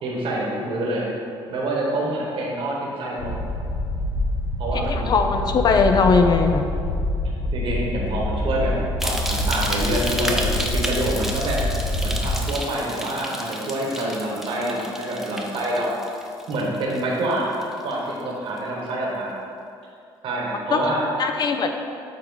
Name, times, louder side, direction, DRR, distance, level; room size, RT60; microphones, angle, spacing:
voice 1, 0.0-1.0 1.5-3.3 4.6-5.1 7.5-8.7 9.0-11.6 12.0-16.0 16.5-17.6 17.8-19.3 20.2-21.1, right 1 dB, 65° right, -3 dB, 1.2 m, -26 dB
sound 1, 3.2-12.4, left 1 dB, 85° left, 1.1 m, -26 dB
voice 2, 4.9-6.7 20.7-20.8 21.2-21.7, left 4 dB, 45° left, 6 dB, 0.5 m, -19 dB
sound 2, 9.0-17.3 17.6-18.1 18.6-18.7, equal, 5° right, 0.6 m, -31 dB
7.4 x 3.7 x 3.9 m, 2.5 s
cardioid pair, 85°, 9 cm